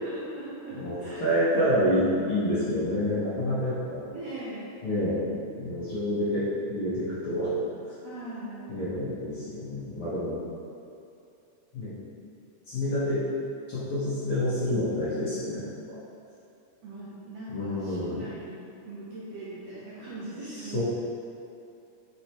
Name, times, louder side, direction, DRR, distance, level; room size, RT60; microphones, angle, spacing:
voice 1, 0.0-1.3 1.5-1.7 4.1-4.8 8.0-8.8 16.8-20.8, right 2 dB, 70° right, -8 dB, 1.6 m, -40 dB
voice 2, 1.2-4.1 4.8-5.3 5.6-7.5 7.8-7.9 8.7-10.4 11.7-11.9 12.7-13.2 13.7-15.7 17.5-18.2 20.7-20.8, left 1 dB, 55° left, -11 dB, 1.6 m, -28 dB
7.4 x 4.6 x 3.0 m, 2.6 s
omnidirectional pair, 3.7 m